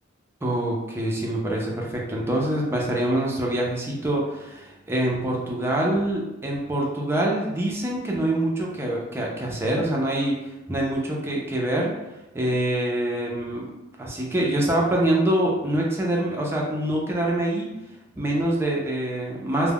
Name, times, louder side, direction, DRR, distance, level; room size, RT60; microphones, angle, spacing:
voice 1, 0.4-11.9 12.3-13.7 14.0-17.7 18.2-19.7, right 1 dB, 10° right, -3 dB, 0.4 m, -25 dB
2.2 x 2.1 x 3.4 m, 0.97 s
head